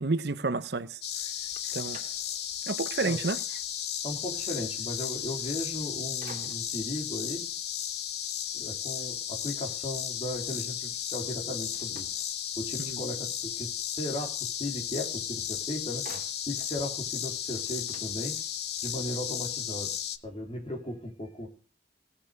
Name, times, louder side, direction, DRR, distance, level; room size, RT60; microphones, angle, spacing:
voice 1, 0.0-1.0 1.7-2.0 2.7-3.4 12.8-13.0, right 3 dB, 65° right, 0.8 m, -30 dB
sound 1, 1.0-20.2, left 10 dB, 60° left, 1.0 m, -34 dB
sound 2, 1.3-2.7 3.2-3.3 5.6-5.9 6.2-7.0 11.7-13.0 15.1-15.2 15.5-16.8 17.2-17.3 17.5-18.8, right 3 dB, 40° right, 2.5 m, -51 dB
voice 2, 4.0-7.5 8.1-12.2 12.6-16.0 16.5-18.4 18.8-19.9 20.2-21.5, left 1 dB, 30° left, 3.5 m, -37 dB
17.5 x 7.1 x 6.6 m
head